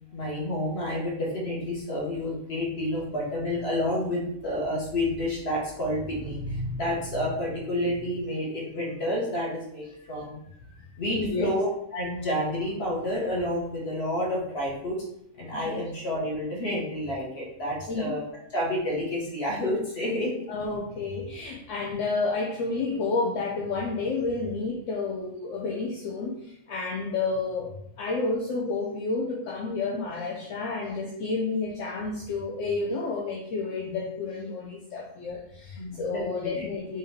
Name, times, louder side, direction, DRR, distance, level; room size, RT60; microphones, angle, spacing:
voice 1, 0.1-10.4 11.0-15.0 15.4-18.2 18.5-20.3 35.8-36.3 36.5-36.7, left 1 dB, 55° left, -4 dB, 1.5 m, -29 dB
voice 2, 11.1-11.5 15.7-15.8 17.9-18.2 20.5-37.0, left 3 dB, 75° left, -1 dB, 0.9 m, -30 dB
3.6 x 2.8 x 3.4 m, 0.74 s
omnidirectional pair, 1.3 m